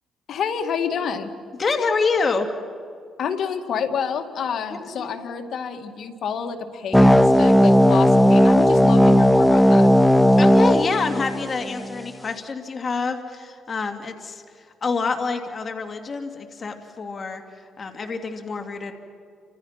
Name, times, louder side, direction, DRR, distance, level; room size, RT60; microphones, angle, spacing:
voice 1, 0.3-1.3 3.2-9.9, left 6 dB, 65° left, 6 dB, 2.2 m, -28 dB
voice 2, 1.6-2.5 4.7-5.1 10.4-17.4 17.8-18.9, left 4 dB, 40° left, 5 dB, 2.5 m, -27 dB
sound 1, 6.9-11.9, equal, 5° left, 1.0 m, -15 dB
29.5 x 26.5 x 5.9 m, 2.3 s
cardioid pair, 100°, 0 cm